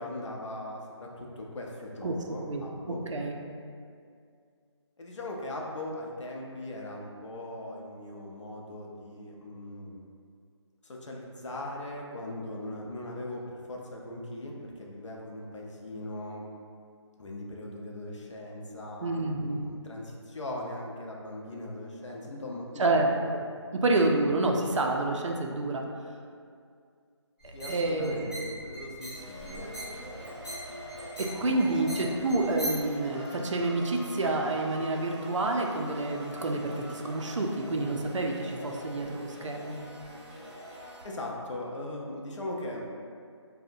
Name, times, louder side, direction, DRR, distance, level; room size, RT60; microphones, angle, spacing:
voice 1, 0.0-3.0 5.0-10.0 10.8-16.5 17.2-23.1 27.5-29.8 31.4-31.8 41.0-42.9, left 1 dB, 80° left, -1 dB, 0.5 m, -39 dB
voice 2, 2.9-3.4 19.0-19.6 22.8-23.1 23.3-23.4 23.8-25.8 27.4-28.3 31.2-39.8, right 2 dB, 85° right, 2 dB, 0.4 m, -28 dB
sound 1, 27.4-32.9, equal, 10° left, 1.2 m, -41 dB
sound 2, 29.1-41.0, equal, 65° right, 0.9 m, -44 dB
2.6 x 2.0 x 2.5 m, 2.2 s
figure-of-eight pair, 165°, 15 cm